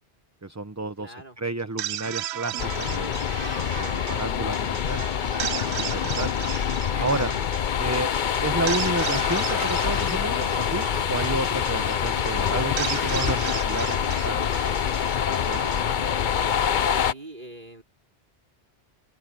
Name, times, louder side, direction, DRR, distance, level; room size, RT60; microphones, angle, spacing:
voice 1, 0.4-5.1 5.8-6.5 7.0-7.3 7.8-8.1 8.4-14.5 15.3-16.0, right 2 dB, 15° right, 0.9 m, -31 dB
voice 2, 1.0-1.4 17.0-17.8, right 1 dB, 45° right, 4.8 m, -43 dB
sound 1, 1.6-16.8, right 12 dB, 80° right, 0.8 m, -36 dB
sound 2, 2.6-17.1, left 8 dB, 55° left, 0.8 m, -26 dB
Drawer open or close, 6.9-7.9 8.9-10.0 10.9-13.5, left 1 dB, 75° left, 4.2 m, -39 dB
open air
omnidirectional pair, 1.1 m